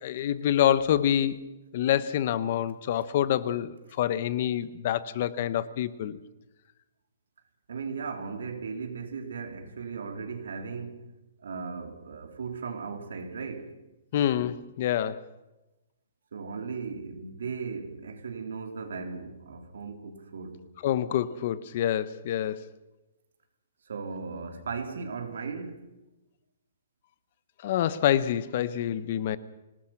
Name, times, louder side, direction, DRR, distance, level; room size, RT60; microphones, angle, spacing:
voice 1, 0.0-1.4 1.7-6.2 14.1-15.2 20.8-22.6 27.6-29.4, left 11 dB, 35° left, 0.9 m, -27 dB
voice 2, 7.7-11.1 11.4-13.8 16.3-20.7 23.9-25.9, right 5 dB, 75° right, 3.7 m, -37 dB
25.5 x 19.5 x 5.9 m
hypercardioid pair, 170°, 0 cm